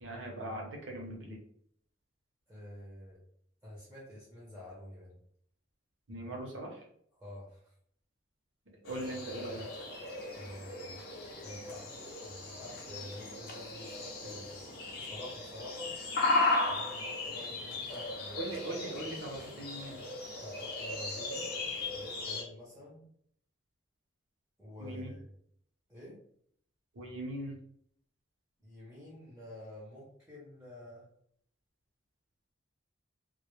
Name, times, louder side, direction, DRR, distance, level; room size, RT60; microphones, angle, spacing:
voice 1, 0.0-1.4 6.1-6.8 8.8-9.7 18.4-20.0 24.8-25.2 26.9-27.6, right 1 dB, 75° right, 0 dB, 0.7 m, -40 dB
voice 2, 2.5-3.2 3.6-5.1 7.2-7.7 10.3-11.0 11.4-15.9 16.7-18.4 20.4-21.5 21.9-23.1 24.6-25.3 25.9-26.2 28.6-31.1, left 1 dB, 10° right, -7 dB, 0.5 m, -49 dB
sound 1, 8.8-22.4, left 2 dB, 50° left, 0.5 m, -36 dB
2.1 x 2.0 x 2.9 m, 0.67 s
head